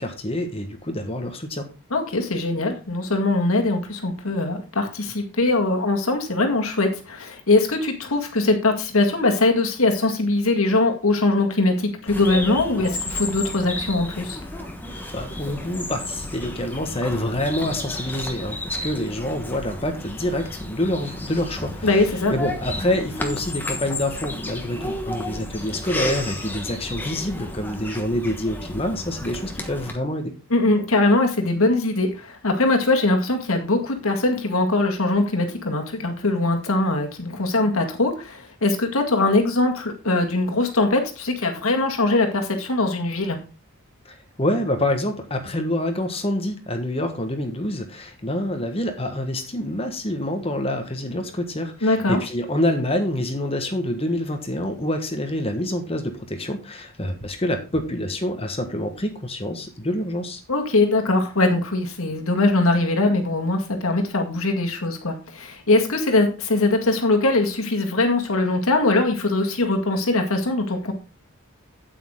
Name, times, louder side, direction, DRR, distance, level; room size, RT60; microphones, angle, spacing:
voice 1, 0.0-1.7 14.9-22.0 22.3-30.3 44.0-60.4, left 1 dB, 25° left, 6 dB, 1.4 m, -27 dB
voice 2, 1.9-14.4 21.8-22.3 30.5-43.4 51.8-52.2 60.5-70.9, left 2 dB, 70° left, 3 dB, 1.9 m, -21 dB
Bird vocalization bird call bird song, 12.1-29.9, left 1 dB, 10° left, 1.2 m, -32 dB
8.6 x 8.5 x 3.7 m, 0.31 s
head